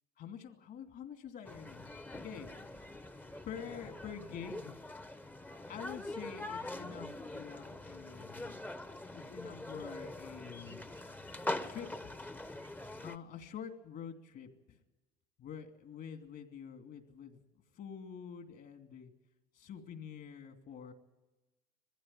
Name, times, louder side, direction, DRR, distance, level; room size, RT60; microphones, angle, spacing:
voice 1, 0.2-1.9 2.2-2.5 3.4-5.0 5.7-10.9 11.6-12.1 13.0-14.8 15.4-17.4 17.7-19.1 19.5-20.9, left 7 dB, 55° left, 6 dB, 2.6 m, -47 dB
sound 1, 1.4-13.2, left 2 dB, 10° left, 0.9 m, -43 dB
21.0 x 15.5 x 8.9 m, 1.1 s
supercardioid pair, 105°, 20 cm